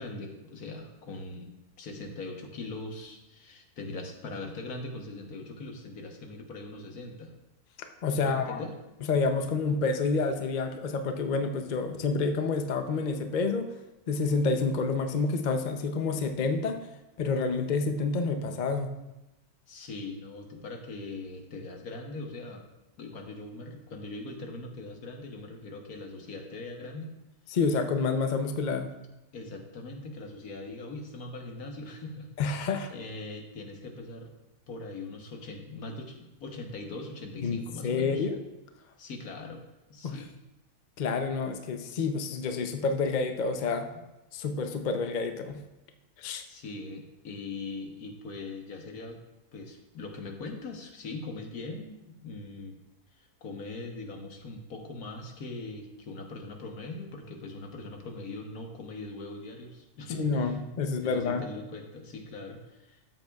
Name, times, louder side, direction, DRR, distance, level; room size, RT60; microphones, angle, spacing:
voice 1, 0.0-7.3 8.1-8.7 19.7-22.6 23.0-27.2 29.3-32.3 32.9-34.3 34.7-38.3 39.0-39.6 39.9-40.3 46.5-49.2 49.5-52.8 53.2-63.0, left 2 dB, 70° left, 3 dB, 1.6 m, -41 dB
voice 2, 8.0-8.6 9.1-13.7 14.1-16.8 17.2-18.9 27.5-28.9 32.4-32.9 37.4-38.4 40.0-40.2 41.0-43.9 44.3-45.6 46.2-46.4 60.2-61.4, left 4 dB, 50° left, 6 dB, 0.5 m, -28 dB
13.0 x 7.9 x 2.3 m, 0.98 s
omnidirectional pair, 1.6 m